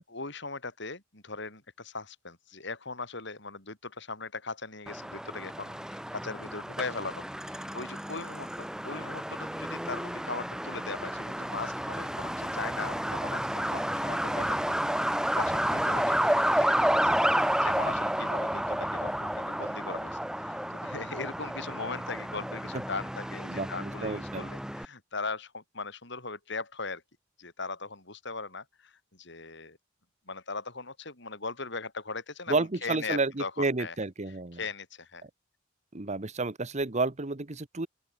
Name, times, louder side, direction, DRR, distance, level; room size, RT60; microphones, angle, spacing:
voice 1, 0.0-14.7 15.0-27.0 27.4-29.8 30.3-33.9 34.5-35.3, left 4 dB, 65° left, 7.9 m, -39 dB
Truck, 4.9-24.9, equal, 5° right, 2.7 m, -31 dB
voice 2, 23.5-24.5 32.5-34.6 35.9-37.9, right 3 dB, 35° right, 1.2 m, -31 dB
open air
head